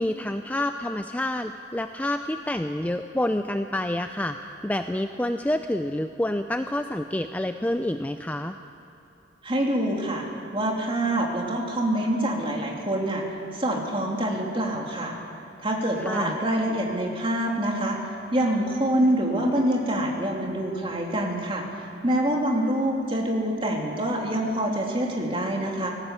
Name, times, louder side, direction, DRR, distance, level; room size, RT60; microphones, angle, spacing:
voice 1, 0.0-8.5 16.0-16.4, left 1 dB, 10° left, 8 dB, 0.4 m, -28 dB
voice 2, 9.4-10.2 10.5-13.2 13.5-15.2 15.6-18.0 18.3-21.6 22.0-25.9, right 1 dB, 30° right, -1 dB, 2.8 m, -25 dB
19.0 x 16.5 x 8.2 m, 2.8 s
head